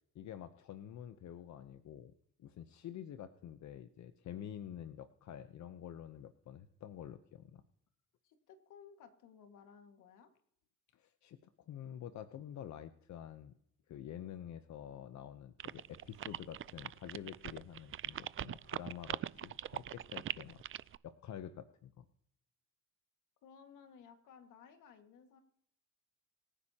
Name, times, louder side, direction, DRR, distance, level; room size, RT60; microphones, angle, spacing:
voice 1, 0.1-2.1 2.4-7.6 10.9-13.6 13.9-20.6 21.0-22.0, left 10 dB, 65° left, 11 dB, 0.8 m, -48 dB
voice 2, 8.2-10.3 23.4-25.4, left 7 dB, 85° left, 6 dB, 1.9 m, -58 dB
sound 1, 15.6-21.0, right 11 dB, 45° right, 0.4 m, -41 dB
25.0 x 9.9 x 2.9 m, 0.72 s
cardioid pair, 90°, 30 cm